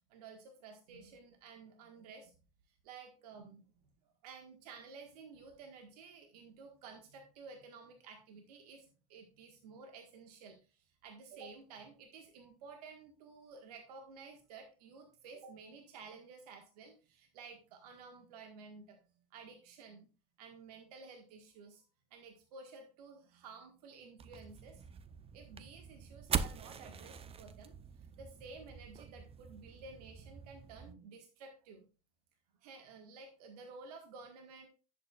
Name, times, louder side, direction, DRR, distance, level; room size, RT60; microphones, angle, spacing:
voice 1, 0.1-2.3 2.8-3.7 4.2-19.0 19.3-20.1 20.4-21.8 22.1-24.8 25.3-31.9 32.6-34.7, right 4 dB, 75° right, 4 dB, 1.6 m, -53 dB
sound 1, 24.2-30.9, right 7 dB, 30° right, 0.8 m, -43 dB
10.5 x 8.4 x 2.4 m, 0.34 s
hypercardioid pair, 80°, 20 cm